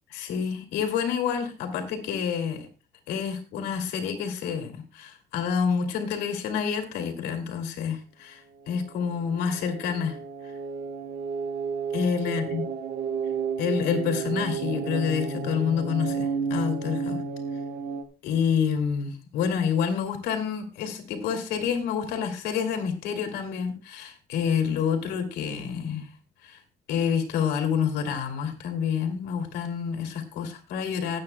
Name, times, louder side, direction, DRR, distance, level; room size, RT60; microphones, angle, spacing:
voice 1, 0.1-2.7 3.1-10.2 11.9-12.6 13.6-17.2 18.2-26.1 26.4-26.6 26.9-31.2, left 7 dB, 85° left, 5 dB, 2.7 m, -28 dB
sound 1, 8.6-18.0, right 6 dB, 70° right, 1.7 m, -32 dB
20.0 x 8.8 x 2.2 m, 0.31 s
cardioid pair, 110°, 17 cm